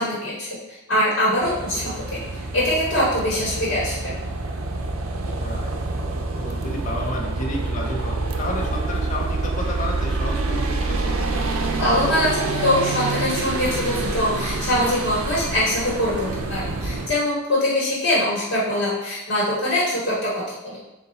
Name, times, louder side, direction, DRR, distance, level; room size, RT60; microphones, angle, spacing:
voice 1, 0.0-4.1 11.7-20.8, left 1 dB, 60° left, -7 dB, 1.4 m, -23 dB
sound 1, 1.4-17.1, right 3 dB, 85° right, 0.5 m, -27 dB
voice 2, 5.4-5.7 6.4-11.1, left 1 dB, 35° left, -1 dB, 0.6 m, -31 dB
3.8 x 2.6 x 4.0 m, 1.0 s
head